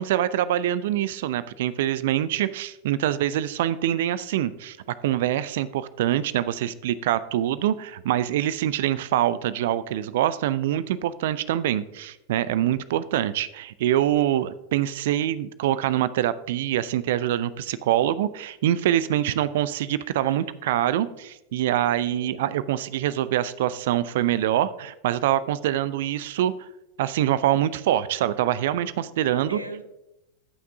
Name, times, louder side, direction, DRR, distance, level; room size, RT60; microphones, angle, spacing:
voice 1, 0.0-4.8 5.0-26.7 27.0-29.6, right 12 dB, 55° right, 16 dB, 0.4 m, -25 dB
voice 2, 22.1-22.5 29.2-29.8, right 1 dB, 85° right, 9 dB, 0.8 m, -38 dB
16.5 x 5.9 x 2.7 m, 0.90 s
figure-of-eight pair, 90°, 0 cm